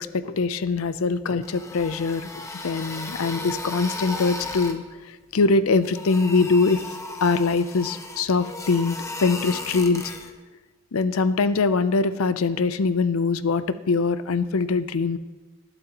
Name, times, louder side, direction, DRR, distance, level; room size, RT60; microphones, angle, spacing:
voice 1, 0.2-4.8 5.3-6.8 7.2-10.1 10.9-15.2, left 4 dB, 80° left, 13 dB, 0.5 m, -23 dB
sound 1, 1.3-4.8 5.7-10.3, left 2 dB, 15° left, 0.8 m, -35 dB
19.5 x 12.0 x 3.0 m, 1.3 s
head